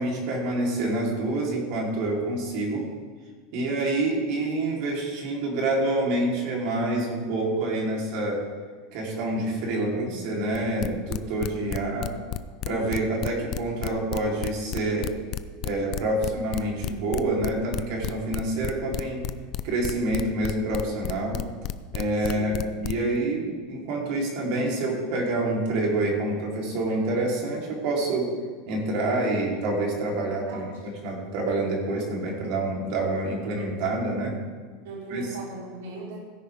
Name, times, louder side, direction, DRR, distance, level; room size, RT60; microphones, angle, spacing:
voice 1, 0.0-2.9 3.5-8.4 8.9-12.1 12.6-15.1 15.6-19.2 19.6-21.4 21.9-28.3 28.7-34.3 35.1-35.2, right 2 dB, 50° right, -2 dB, 3.5 m, -27 dB
voice 2, 9.7-10.1 11.7-12.0 16.2-16.5 22.2-22.7 30.5-30.7 34.8-36.2, right 3 dB, 90° right, -2 dB, 3.3 m, -39 dB
sound 1, 10.5-23.2, left 13 dB, 35° left, 0.5 m, -31 dB
17.0 x 10.0 x 3.5 m, 1.5 s
supercardioid pair, 170°, 0 cm